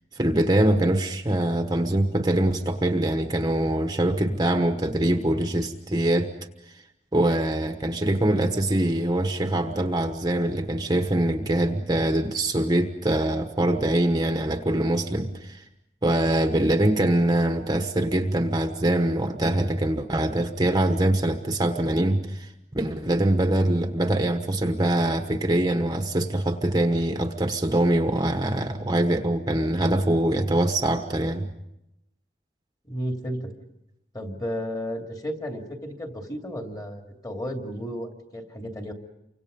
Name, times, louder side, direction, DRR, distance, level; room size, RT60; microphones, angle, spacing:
voice 1, 0.1-6.3 7.1-15.7 16.0-31.5, right 1 dB, 20° right, 6 dB, 1.2 m, -23 dB
voice 2, 32.8-33.5 34.1-38.9, equal, 20° left, 3 dB, 2.8 m, -33 dB
29.0 x 25.5 x 5.4 m, 0.88 s
head